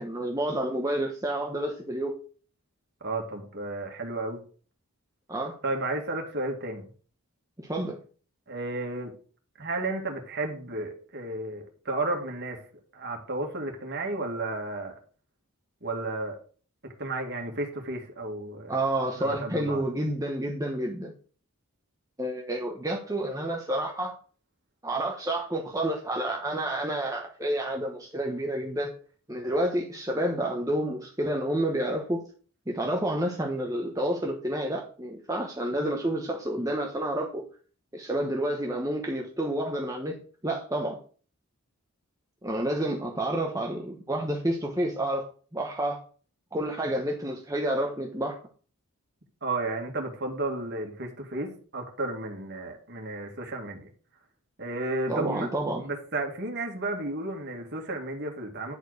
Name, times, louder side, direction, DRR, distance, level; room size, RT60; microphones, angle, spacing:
voice 1, 0.0-2.2 5.3-5.6 7.6-8.0 18.7-21.1 22.2-24.1 24.8-28.9 29.3-32.3 32.7-37.4 37.9-41.0 42.4-45.3 45.5-46.0 46.5-48.4 55.1-55.9, right 1 dB, 15° right, 1.1 m, -29 dB
voice 2, 3.0-4.4 5.6-6.8 8.5-9.1 9.6-12.6 12.9-15.0 15.8-16.4 17.0-18.8 19.2-19.8 49.4-53.9 54.6-55.5 55.8-58.7, right 2 dB, 50° right, 2.2 m, -33 dB
11.0 x 4.7 x 6.5 m
head